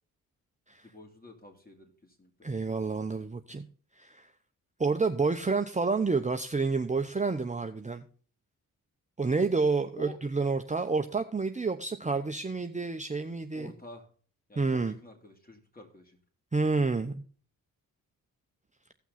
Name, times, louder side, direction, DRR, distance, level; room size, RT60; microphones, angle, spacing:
voice 1, 0.8-2.3 9.9-10.2 13.5-14.1 14.5-16.2, left 2 dB, 25° left, 3 dB, 3.3 m, -49 dB
voice 2, 2.4-3.7 4.0-4.3 4.8-8.0 9.2-13.7 14.6-14.9 16.5-17.2, right 4 dB, 20° right, 6 dB, 0.8 m, -29 dB
16.5 x 5.9 x 4.1 m, 0.42 s
supercardioid pair, 50°, 38 cm